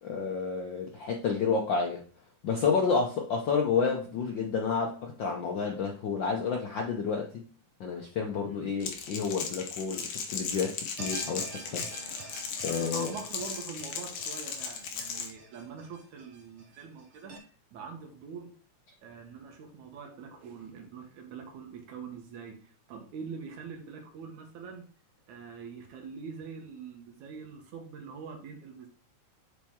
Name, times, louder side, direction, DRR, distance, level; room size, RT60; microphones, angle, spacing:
voice 1, 0.0-2.0 2.4-7.4 7.8-11.5 11.7-13.1, left 5 dB, 85° left, 1 dB, 1.0 m, -30 dB
Crackle, 8.8-15.3, left 6 dB, 70° left, 2.2 m, -37 dB
sound 1, 11.0-17.4, right 3 dB, 55° right, 1.8 m, -47 dB
voice 2, 12.7-17.3 17.7-18.5 19.0-24.9 25.3-28.9, right 5 dB, 80° right, 3 dB, 2.5 m, -44 dB
7.3 x 4.4 x 3.6 m, 0.41 s
omnidirectional pair, 3.3 m